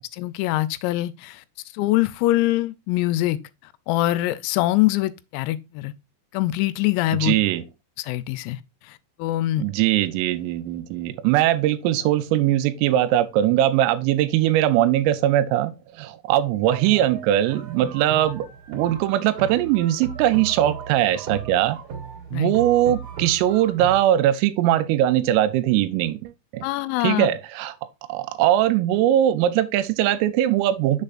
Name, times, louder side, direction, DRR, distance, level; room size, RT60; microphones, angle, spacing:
voice 1, 0.1-1.4 1.7-3.4 3.9-5.9 6.3-7.4 8.0-8.6 8.9-9.6 22.3-22.5 26.6-27.3, left 16 dB, 90° left, 3.2 m, -23 dB
voice 2, 7.2-7.6 9.6-21.8 22.3-26.7 27.0-27.7 28.1-31.0, right 12 dB, 85° right, 3.2 m, -21 dB
sound 1, 16.7-24.0, right 7 dB, 60° right, 1.5 m, -36 dB
7.0 x 6.6 x 2.5 m
omnidirectional pair, 5.9 m